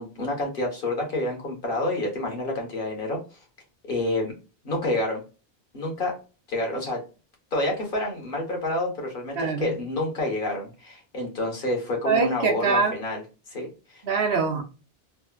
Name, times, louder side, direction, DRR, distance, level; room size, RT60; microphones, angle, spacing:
voice 1, 0.0-3.4 3.8-4.3 4.6-5.2 5.7-6.2 6.5-7.0 7.5-13.2 13.5-14.0, left 1 dB, 60° left, 1.3 m, -28 dB
voice 2, 9.4-9.7 12.0-12.9 14.0-14.6, right 4 dB, 70° right, 0.9 m, -23 dB
3.3 x 2.1 x 2.3 m
omnidirectional pair, 1.0 m